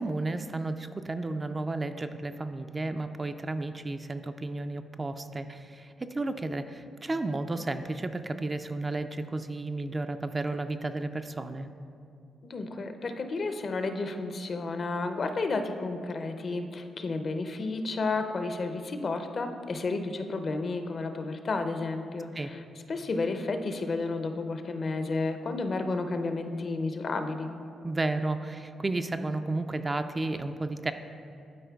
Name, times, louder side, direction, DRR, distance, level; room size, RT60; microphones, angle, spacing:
voice 1, 0.0-11.7 22.3-22.5 27.8-30.9, right 2 dB, 30° right, 8 dB, 0.3 m, -32 dB
voice 2, 12.4-22.6 22.9-27.5, left 3 dB, 50° left, 7 dB, 0.5 m, -32 dB
11.5 x 4.3 x 2.3 m, 2.5 s
supercardioid pair, 60°, 0 cm